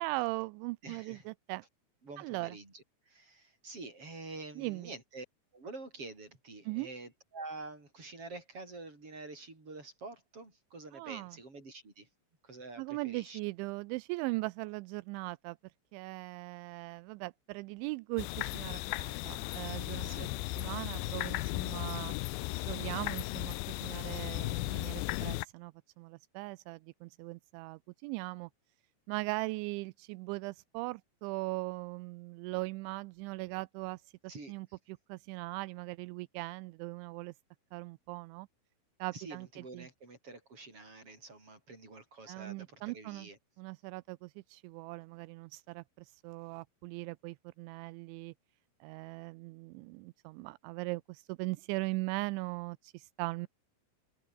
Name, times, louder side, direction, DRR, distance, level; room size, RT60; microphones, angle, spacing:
voice 1, 0.0-1.6 2.2-2.6 4.6-4.9 6.7-6.9 10.9-11.3 12.8-15.6 15.9-20.3 20.6-22.2 22.6-28.5 29.1-34.1 34.5-37.3 37.7-38.5 39.0-39.5 39.7-39.9 42.3-43.3 43.6-48.3 48.8-53.5, right 23 dB, 85° right, 2.7 m, -39 dB
voice 2, 0.8-1.3 2.0-5.2 5.5-12.1 12.4-13.4 20.0-20.3 34.3-34.8 39.1-43.4, right 3 dB, 25° right, 8.6 m, -47 dB
sound 1, 18.2-25.5, left 22 dB, 85° left, 2.6 m, -36 dB
omnidirectional pair, 5.8 m